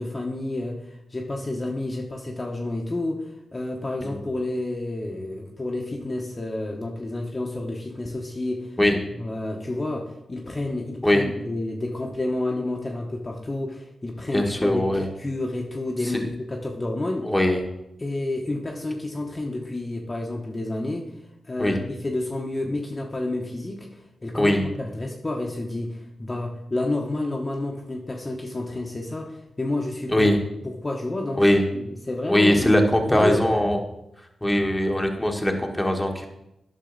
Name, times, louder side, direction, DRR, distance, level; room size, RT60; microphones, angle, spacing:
voice 1, 0.0-8.8 9.2-17.3 18.0-21.1 21.5-30.3 30.6-31.4 31.7-32.8 33.1-33.6, left 2 dB, 30° left, 0 dB, 1.2 m, -30 dB
voice 2, 14.3-15.1 16.1-16.2 17.2-17.6 21.6-21.8 24.3-24.7 30.1-30.4 31.4-31.6 32.3-33.8 34.4-36.3, left 1 dB, 10° left, 2 dB, 1.4 m, -21 dB
10.5 x 5.6 x 4.0 m, 0.88 s
cardioid pair, 50°, 0 cm